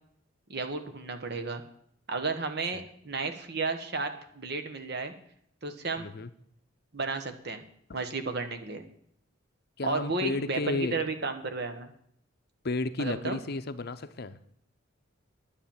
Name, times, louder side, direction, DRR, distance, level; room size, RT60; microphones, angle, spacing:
voice 1, 0.5-1.6 2.1-5.1 5.6-6.1 6.9-7.6 7.9-8.8 9.8-11.9 13.0-13.4, right 3 dB, 55° right, 8 dB, 1.3 m, -33 dB
voice 2, 6.0-6.3 9.8-11.0 12.6-14.4, left 2 dB, 50° left, 12 dB, 0.7 m, -32 dB
10.5 x 8.8 x 7.2 m, 0.68 s
head